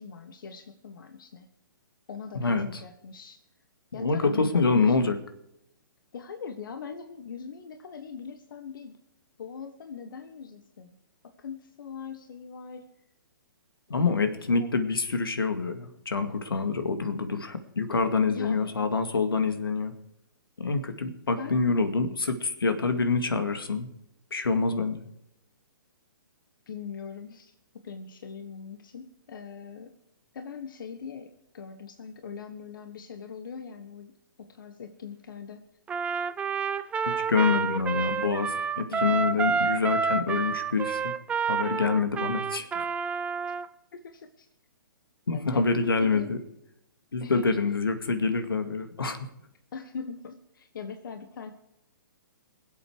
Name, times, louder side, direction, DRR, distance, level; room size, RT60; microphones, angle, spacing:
voice 1, 0.0-1.5 2.1-3.4 3.9-5.0 6.1-9.0 9.4-11.0 11.2-12.8 14.0-14.7 18.3-18.8 21.3-21.6 26.7-27.5 27.8-29.9 30.3-35.6 38.9-39.0 43.9-44.5 45.3-45.7 46.0-46.3 47.2-47.5 49.7-51.5, left 6 dB, 65° left, 7 dB, 1.5 m, -41 dB
voice 2, 2.3-2.8 4.0-5.2 13.9-19.9 20.6-23.9 24.3-25.1 37.3-41.1 41.5-42.9 45.3-46.4 47.1-49.3, left 4 dB, 85° left, 8 dB, 2.1 m, -26 dB
Trumpet, 35.9-43.7, right 6 dB, 10° right, 0.6 m, -29 dB
22.5 x 8.2 x 4.9 m, 0.82 s
hypercardioid pair, 135°, 12 cm